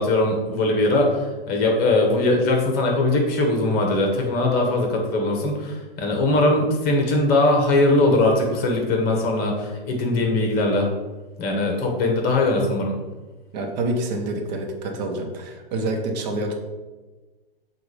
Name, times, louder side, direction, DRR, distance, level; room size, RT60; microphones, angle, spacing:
voice 1, 0.0-10.9 11.4-13.0, left 2 dB, 30° left, 2 dB, 1.4 m, -21 dB
voice 2, 13.5-16.5, right 2 dB, 45° right, 2 dB, 1.1 m, -27 dB
7.9 x 2.6 x 4.9 m, 1.2 s
hypercardioid pair, 120°, 30 cm